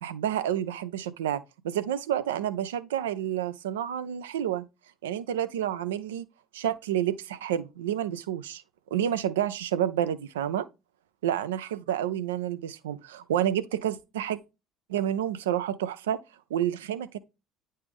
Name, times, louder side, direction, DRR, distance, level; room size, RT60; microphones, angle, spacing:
voice 1, 0.0-4.6 5.0-6.3 6.5-8.6 8.9-10.7 11.2-14.4 14.9-16.2 16.5-17.2, right 10 dB, 80° right, 0.4 m, -29 dB
9.6 x 3.2 x 3.5 m
hypercardioid pair, 60°, 0 cm